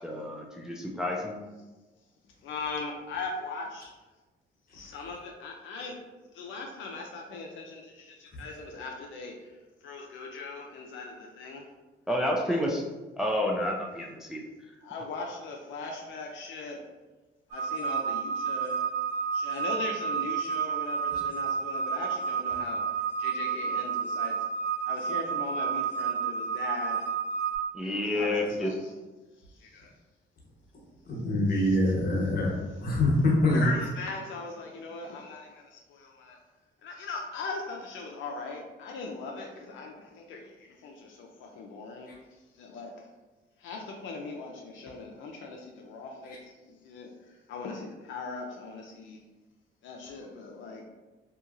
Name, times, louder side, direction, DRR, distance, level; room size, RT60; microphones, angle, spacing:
voice 1, 0.0-1.4 12.1-12.9 13.2-14.4 27.7-28.7, left 1 dB, 5° right, -1 dB, 0.4 m, -29 dB
voice 2, 2.4-3.9 4.7-6.0 6.3-9.5 9.8-11.7 12.5-12.6 14.8-16.8 17.5-18.8 19.3-22.8 23.2-24.4 24.8-27.1 28.1-28.9 29.5-29.9 33.5-36.4 36.8-42.1 42.5-43.1 43.6-49.2 49.8-50.8, left 3 dB, 75° left, 1 dB, 0.5 m, -39 dB
sound 1, 17.5-27.6, right 6 dB, 75° right, 1.4 m, -30 dB
voice 3, 31.0-33.6 46.3-46.4, left 1 dB, 50° left, -3 dB, 1.1 m, -25 dB
2.8 x 2.7 x 2.5 m, 1.2 s
cardioid pair, 90°, 20 cm